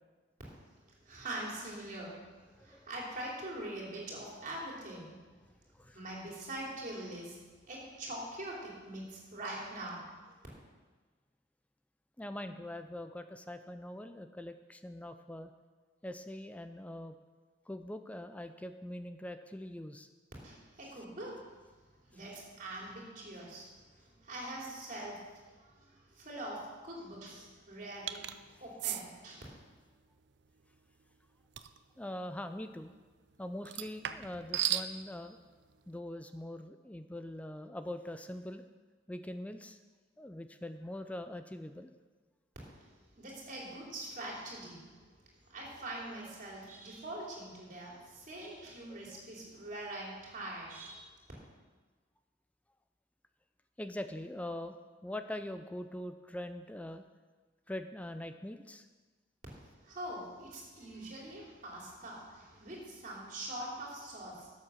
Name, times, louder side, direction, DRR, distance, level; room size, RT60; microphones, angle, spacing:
voice 1, 1.0-2.1 2.6-5.1 5.9-7.4 7.7-10.0 20.4-21.4 22.1-23.7 24.0-25.2 25.6-28.2 28.6-29.4 43.2-45.0 45.5-51.1 59.8-64.5, right 1 dB, 45° right, -3 dB, 3.4 m, -43 dB
voice 2, 2.6-2.9 5.7-6.0 12.2-15.5 16.0-17.2 17.7-20.1 32.0-32.9 33.4-35.4 35.9-38.6 39.1-39.8 40.2-41.9 48.9-49.2 53.8-54.8 55.0-57.0 57.7-58.9, left 1 dB, 5° left, 9 dB, 0.4 m, -43 dB
sound 1, 28.1-28.4 28.8-29.0 31.6-31.8 33.7-34.9, right 11 dB, 65° right, 0.5 m, -34 dB
12.5 x 7.4 x 6.4 m, 1.4 s
head